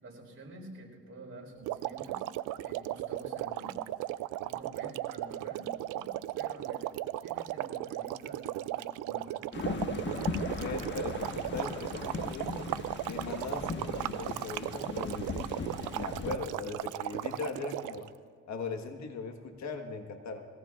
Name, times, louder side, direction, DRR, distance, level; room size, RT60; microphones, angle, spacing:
voice 1, 0.0-2.3 2.6-3.8 4.4-6.9 7.2-9.4, right 1 dB, 45° right, 0 dB, 4.3 m, -48 dB
sound 1, 1.6-18.1, right 15 dB, 90° right, 0.5 m, -36 dB
sound 2, 9.5-16.4, left 4 dB, 40° left, 1.3 m, -38 dB
voice 2, 10.5-12.7 13.0-18.1 18.5-20.5, left 4 dB, 65° left, 5 dB, 1.5 m, -40 dB
21.5 x 17.5 x 2.5 m, 2.2 s
cardioid pair, 90°, 30 cm